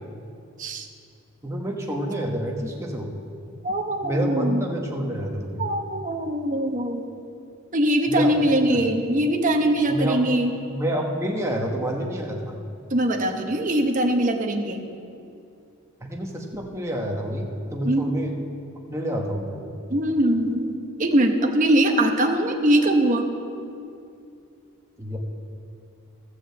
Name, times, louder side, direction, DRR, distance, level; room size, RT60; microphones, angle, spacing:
voice 1, 1.4-3.2 4.0-5.7 8.1-8.8 9.9-10.2 10.7-12.6 16.0-18.4 18.9-19.6 25.0-25.2, equal, 15° right, 0 dB, 1.2 m, -28 dB
voice 2, 3.6-4.6 5.6-7.0 7.7-10.5 12.9-14.8 17.8-18.1 19.9-23.3, right 1 dB, 35° right, 4 dB, 0.9 m, -22 dB
14.0 x 6.3 x 7.7 m, 2.5 s
head